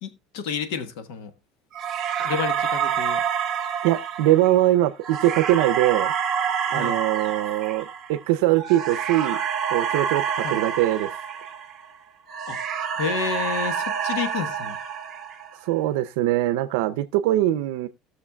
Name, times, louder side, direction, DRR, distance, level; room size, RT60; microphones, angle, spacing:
voice 1, 0.0-1.3 2.2-3.2 6.7-7.0 10.4-10.6 12.5-12.6 13.0-14.8, left 6 dB, 70° left, 1.3 m, -30 dB
sound 1, 1.8-12.0 12.3-15.7, right 7 dB, 20° right, 1.7 m, -28 dB
voice 2, 3.8-6.1 6.7-9.4 9.7-11.1 15.6-17.9, right 14 dB, 75° right, 0.6 m, -22 dB
18.5 x 6.5 x 2.3 m
cardioid pair, 180°, 0 cm